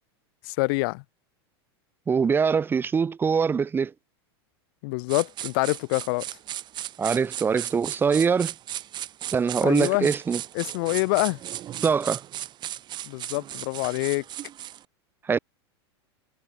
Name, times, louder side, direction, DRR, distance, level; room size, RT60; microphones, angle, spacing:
voice 1, 0.4-1.0 4.8-6.2 9.6-10.1 10.5-11.4 13.1-14.2, left 29 dB, 60° left, 2.3 m, -26 dB
voice 2, 2.1-3.9 7.0-8.5 9.3-10.4 11.8-12.2 15.3-15.4, right 6 dB, 15° right, 0.7 m, -23 dB
sound 1, 5.1-14.8, right 12 dB, 30° right, 1.9 m, -36 dB
supercardioid pair, 125°, 14 cm